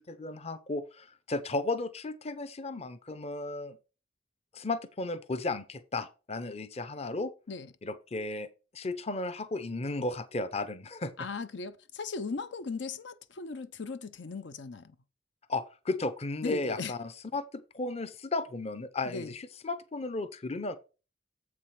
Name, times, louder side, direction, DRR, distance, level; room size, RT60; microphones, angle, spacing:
voice 1, 0.1-3.8 4.5-7.3 7.8-8.5 8.7-11.1 15.5-20.8, left 2 dB, 35° left, 0.7 m, -34 dB
voice 2, 11.2-15.0 16.4-16.9 19.0-19.4, left 4 dB, 75° left, 0.7 m, -37 dB
7.7 x 4.8 x 5.7 m
head